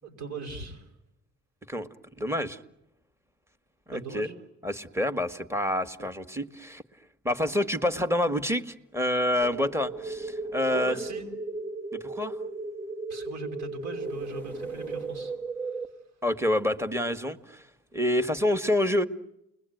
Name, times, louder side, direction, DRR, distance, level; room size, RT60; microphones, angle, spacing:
voice 1, 0.0-0.8 3.9-4.3 10.7-11.2 13.1-15.3, right 4 dB, 80° right, 3 dB, 5.4 m, -39 dB
voice 2, 2.2-2.6 3.9-4.3 4.6-6.8 7.2-10.9 11.9-12.3 16.2-17.6 17.9-19.1, left 1 dB, 10° right, 10 dB, 1.7 m, -27 dB
sound 1, 9.4-15.9, right 3 dB, 5° left, 1.6 m, -36 dB
30.0 x 21.5 x 9.3 m, 0.84 s
cardioid pair, 90°, 30 cm